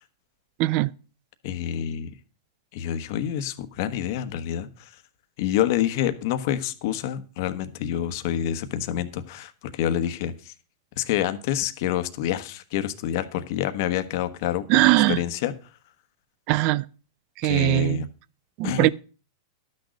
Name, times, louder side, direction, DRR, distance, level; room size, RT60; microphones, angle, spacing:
voice 1, 0.6-0.9 14.7-15.2 16.5-16.8 17.4-18.0 18.6-18.9, right 18 dB, 45° right, 0.5 m, -20 dB
voice 2, 1.4-2.1 2.7-4.9 5.4-10.5 11.0-15.5 17.4-18.1 18.6-18.9, left 11 dB, 55° left, 1.2 m, -27 dB
12.0 x 6.5 x 6.4 m
hypercardioid pair, 135°, 2 cm